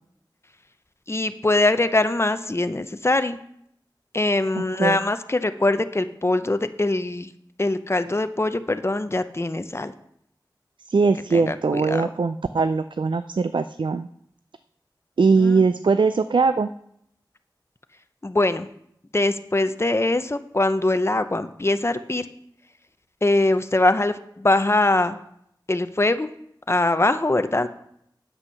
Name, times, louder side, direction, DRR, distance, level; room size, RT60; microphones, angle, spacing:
voice 1, 1.1-3.4 4.1-7.3 7.6-9.9 11.3-12.1 15.4-15.6 18.2-18.7 19.1-22.3 23.2-25.2 25.7-26.3 26.7-27.7, left 2 dB, 30° left, 11 dB, 0.6 m, -22 dB
voice 2, 4.6-5.0 10.9-14.1 15.2-16.7, right 4 dB, 75° right, 11 dB, 0.3 m, -21 dB
8.8 x 7.9 x 5.7 m, 0.73 s
wide cardioid pair, 55°, 8 cm